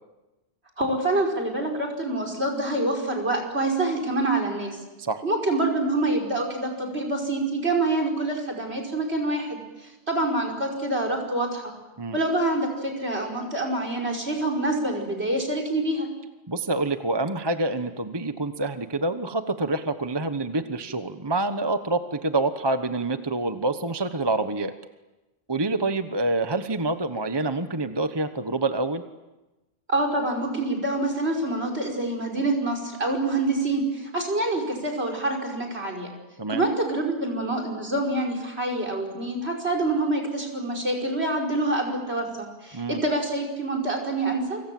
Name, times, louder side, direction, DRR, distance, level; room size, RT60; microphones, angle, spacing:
voice 1, 0.8-4.8 5.2-9.6 10.1-11.7 12.1-16.1 29.9-36.1 36.5-44.6, right 2 dB, 65° right, 1 dB, 5.7 m, -26 dB
voice 2, 16.5-24.7 25.5-29.0 36.4-36.6 42.7-43.0, right 2 dB, 25° right, 9 dB, 1.1 m, -27 dB
29.0 x 26.0 x 7.7 m, 1.1 s
omnidirectional pair, 1.2 m